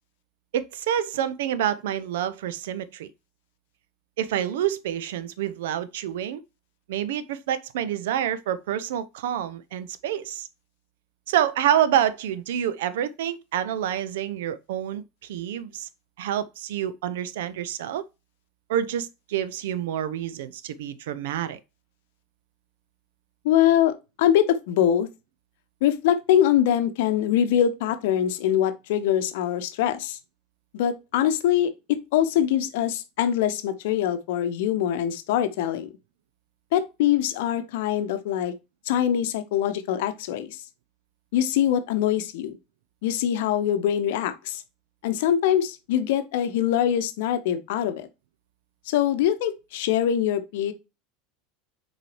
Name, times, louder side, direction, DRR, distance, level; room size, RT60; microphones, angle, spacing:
voice 1, 0.5-3.1 4.2-6.4 6.9-10.5 11.3-15.9 16.2-18.0 18.7-21.6, right 10 dB, 60° right, 0.6 m, -27 dB
voice 2, 23.4-25.1 25.8-30.2 30.7-35.9 36.7-38.5 38.9-40.6 41.3-42.6 43.0-44.6 45.0-48.1 48.9-50.7, left 10 dB, 60° left, 0.8 m, -23 dB
7.5 x 4.7 x 3.1 m
figure-of-eight pair, 75°, 0 cm